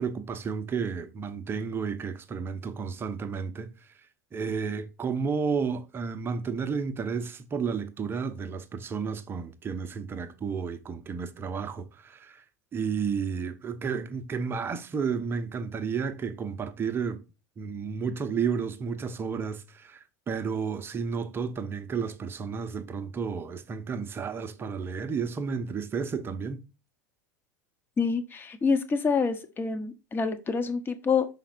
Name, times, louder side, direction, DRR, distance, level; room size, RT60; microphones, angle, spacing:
voice 1, 0.0-3.7 4.3-12.4 12.7-17.2 17.6-26.6, right 5 dB, 25° right, 0.8 m, -32 dB
voice 2, 28.0-31.3, left 5 dB, 20° left, 1.0 m, -27 dB
5.8 x 4.4 x 4.2 m
figure-of-eight pair, 85°, 10 cm